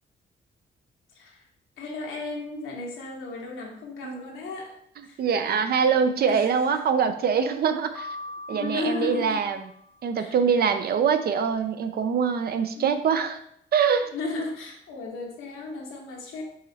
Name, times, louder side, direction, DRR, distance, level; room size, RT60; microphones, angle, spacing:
voice 1, 1.1-1.4 1.8-5.2 6.3-6.5 8.5-9.4 10.2-10.7 12.7-12.9 14.1-16.4, left 3 dB, 85° left, -1 dB, 1.1 m, -35 dB
voice 2, 5.2-8.1 8.5-9.6 10.0-13.4 13.7-14.1, right 6 dB, 55° right, 9 dB, 0.5 m, -24 dB
Piano, 8.0-10.1, left 2 dB, 15° left, 0.8 m, -41 dB
4.8 x 3.0 x 2.8 m, 0.68 s
cardioid pair, 90°, 20 cm